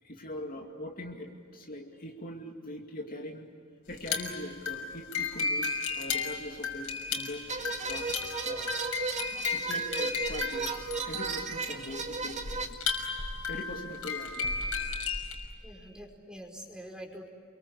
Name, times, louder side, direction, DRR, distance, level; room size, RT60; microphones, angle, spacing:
voice 1, 0.0-3.5 3.9-7.4 7.8-8.1 8.4-8.7 9.1-10.7 11.0-12.4 12.7-12.8 13.5-14.6, left 1 dB, 40° left, 1 dB, 2.5 m, -42 dB
sound 1, 3.9-15.5, left 4 dB, 75° left, 6.0 m, -34 dB
sound 2, 7.5-12.7, right 4 dB, 35° right, 1.8 m, -35 dB
voice 2, 15.6-17.3, equal, 5° right, 2 dB, 4.8 m, -45 dB
30.0 x 23.5 x 8.4 m, 2.3 s
head